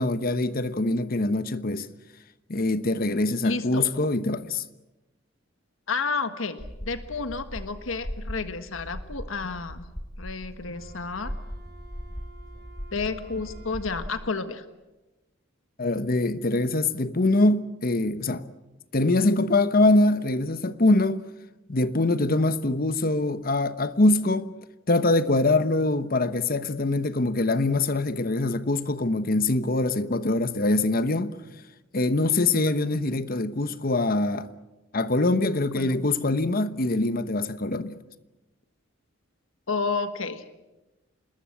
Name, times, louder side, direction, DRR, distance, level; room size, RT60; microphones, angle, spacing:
voice 1, 0.0-1.9 2.5-4.6 15.8-18.5 18.9-21.2 21.7-24.5 24.9-31.3 31.9-34.5 34.9-38.0, left 2 dB, 45° left, 1.1 m, -23 dB
voice 2, 3.4-3.9 5.9-9.8 10.2-11.3 12.9-14.6 35.7-36.1 39.7-40.5, left 4 dB, 85° left, 1.5 m, -31 dB
sound 1, 6.6-14.1, equal, 20° left, 1.8 m, -39 dB
Wind instrument woodwind instrument, 10.5-14.7, right 3 dB, 55° right, 4.3 m, -53 dB
27.5 x 20.5 x 8.6 m
head